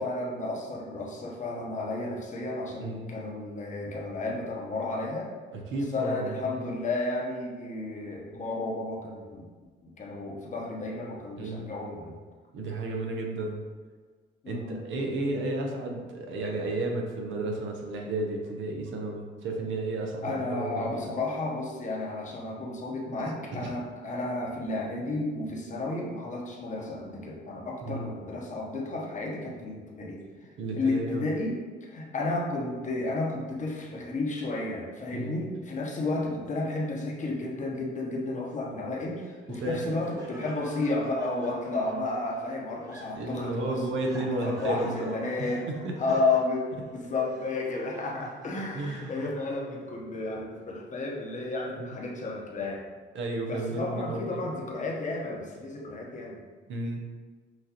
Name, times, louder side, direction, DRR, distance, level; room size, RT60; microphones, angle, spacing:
voice 1, 0.0-5.3 5.9-9.5 9.8-12.2 14.4-14.8 20.2-43.8 44.1-45.7 46.0-46.6 46.9-52.8 53.5-56.4, left 2 dB, 40° left, -2 dB, 0.9 m, -32 dB
voice 2, 2.8-3.1 5.5-6.7 11.4-11.7 12.5-13.6 14.5-21.1 23.2-23.3 23.6-23.7 27.8-28.1 30.6-31.2 35.1-35.4 39.6-39.8 43.1-45.1 45.4-45.9 48.7-49.2 51.8-52.0 53.1-54.4 56.7-57.0, right 2 dB, 75° right, 1 dB, 0.7 m, -33 dB
Laughter, 39.2-49.7, equal, 15° right, 1.2 m, -48 dB
6.0 x 2.6 x 2.9 m, 1.5 s
cardioid pair, 90°, 20 cm